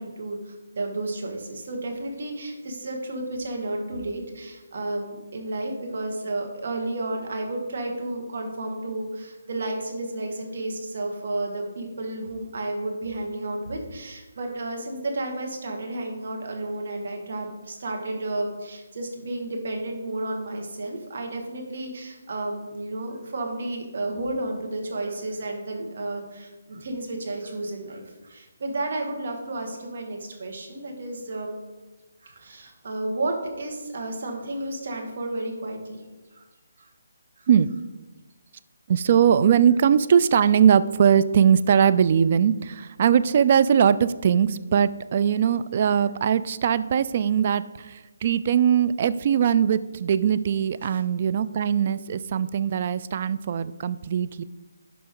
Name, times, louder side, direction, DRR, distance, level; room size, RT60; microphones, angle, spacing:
voice 1, 0.0-31.6 32.2-36.0 36.3-36.5 36.8-36.9 37.4-37.5 50.8-51.0, right 2 dB, 60° right, 2 dB, 2.0 m, -32 dB
voice 2, 38.9-54.4, right 8 dB, 40° right, 14 dB, 0.4 m, -21 dB
11.0 x 5.1 x 3.8 m, 1.2 s
figure-of-eight pair, 155°, 0 cm